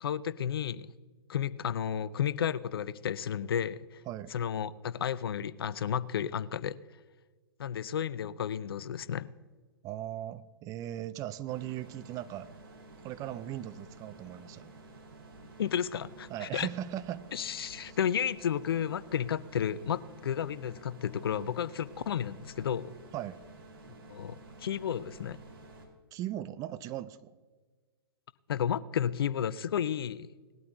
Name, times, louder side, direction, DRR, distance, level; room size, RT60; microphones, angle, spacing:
voice 1, 0.0-0.9 1.3-4.0 4.3-6.8 7.6-9.3 15.6-16.7 17.3-22.9 24.1-25.4 28.5-30.3, left 9 dB, 65° left, 18 dB, 0.5 m, -32 dB
voice 2, 9.8-12.5 13.0-14.7 16.3-17.3 17.6-18.0 23.1-23.4 26.1-27.3, right 12 dB, 25° right, 13 dB, 0.6 m, -38 dB
sound 1, 11.5-25.9, right 2 dB, 65° right, 4.1 m, -52 dB
19.5 x 12.5 x 2.7 m, 1.4 s
figure-of-eight pair, 115°, 13 cm